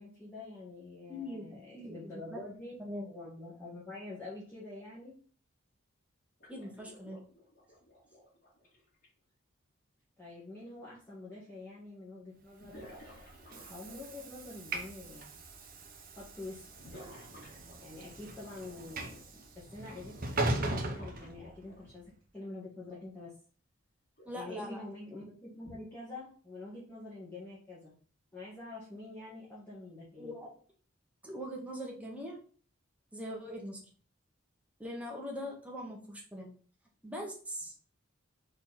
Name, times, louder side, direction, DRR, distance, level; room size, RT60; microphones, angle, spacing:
voice 1, 0.0-2.7 3.0-5.2 10.2-12.8 13.5-15.3 16.1-17.0 17.8-22.0 22.3-23.3 24.3-27.9 28.3-30.4, left 2 dB, 10° left, -8 dB, 1.7 m, -46 dB
voice 2, 1.1-1.5 1.7-2.4 2.8-3.1 6.5-7.2 24.2-24.8 30.1-30.5 31.2-32.4 33.1-33.8 34.8-36.5 37.0-37.8, equal, 5° right, -1 dB, 1.5 m, -41 dB
sound 1, 6.4-9.1 11.0-11.1 12.6-14.4 16.8-18.1 20.6-22.1 22.8-23.0 24.2-24.4 25.6-25.7, left 1 dB, 45° left, 2.1 m, -53 dB
Train / Sliding door, 12.7-21.9, right 2 dB, 45° right, 1.0 m, -39 dB
4.4 x 3.9 x 5.6 m, 0.42 s
head